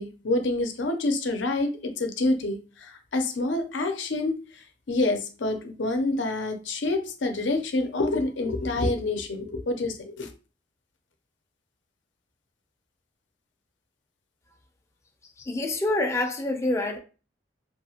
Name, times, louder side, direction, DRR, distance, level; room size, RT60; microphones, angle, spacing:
voice 1, 0.0-4.4 4.9-10.3, left 2 dB, 80° left, 0.6 m, -27 dB
voice 2, 15.4-17.0, left 2 dB, 15° left, 0.5 m, -26 dB
2.8 x 2.4 x 2.8 m
head